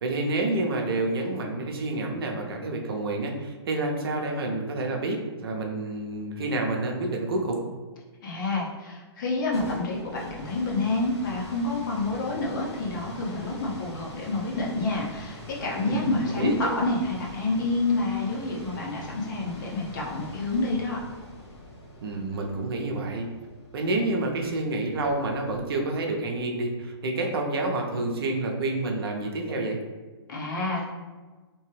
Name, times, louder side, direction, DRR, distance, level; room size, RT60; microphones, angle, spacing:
voice 1, 0.0-7.6 15.8-16.7 22.0-23.3 23.7-29.8, right 2 dB, 60° right, 1 dB, 0.6 m, -28 dB
voice 2, 8.2-21.0 30.3-30.9, left 2 dB, 45° left, -3 dB, 0.7 m, -28 dB
sound 1, 9.2-25.9, equal, 80° left, 1.0 m, -44 dB
2.8 x 2.2 x 3.1 m, 1.3 s
hypercardioid pair, 160°, 14 cm